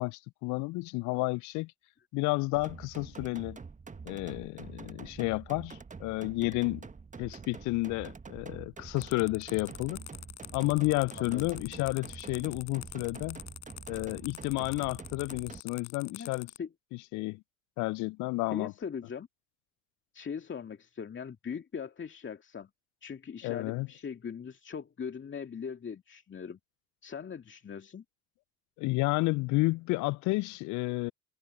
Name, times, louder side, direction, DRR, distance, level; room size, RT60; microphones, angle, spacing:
voice 1, 0.0-1.7 2.1-3.6 4.0-6.9 7.2-10.0 10.5-13.4 13.9-16.5 17.1-17.4 17.8-18.7 23.4-23.9 28.8-31.1, left 23 dB, 45° left, 0.5 m, -31 dB
sound 1, 2.5-15.6, right 5 dB, 20° right, 1.5 m, -46 dB
sound 2, 9.0-16.6, left 32 dB, 65° left, 5.6 m, -46 dB
voice 2, 11.2-11.5 16.0-16.3 16.6-16.7 18.5-19.3 20.1-22.7 23.0-26.6 27.0-28.0, left 6 dB, 30° left, 2.3 m, -40 dB
hypercardioid pair, 65°, 41 cm